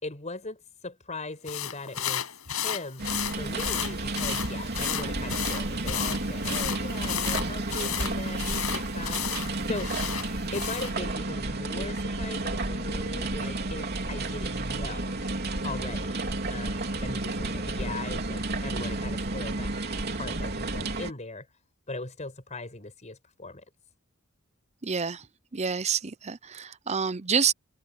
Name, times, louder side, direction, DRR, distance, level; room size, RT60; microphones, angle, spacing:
voice 1, 0.0-9.9 10.5-15.1 15.6-16.2 16.5-19.7 20.1-21.5 21.9-23.6, left 2 dB, 35° left, 5.3 m, -39 dB
sound 1, 1.5-11.0, left 9 dB, 80° left, 6.4 m, -33 dB
sound 2, 3.0-21.1, right 2 dB, 50° right, 3.5 m, -31 dB
voice 2, 24.8-25.2 25.5-27.5, right 6 dB, 30° right, 0.7 m, -28 dB
head